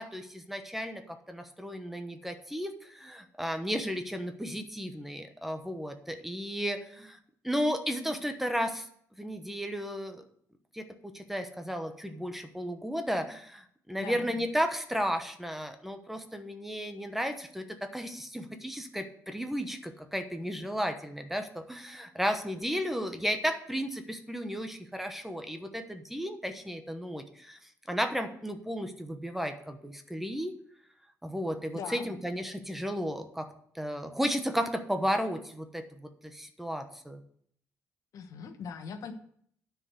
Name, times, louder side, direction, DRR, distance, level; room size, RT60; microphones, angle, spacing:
voice 1, 0.0-7.2 7.4-8.9 9.2-10.2 10.7-10.9 11.1-30.5 31.2-33.5 33.7-37.2, equal, 5° right, 7 dB, 1.0 m, -34 dB
voice 2, 14.0-14.3 31.7-32.1 38.1-39.1, left 6 dB, 70° left, 7 dB, 1.2 m, -40 dB
9.7 x 4.9 x 7.9 m, 0.65 s
cardioid pair, 105°, 6 cm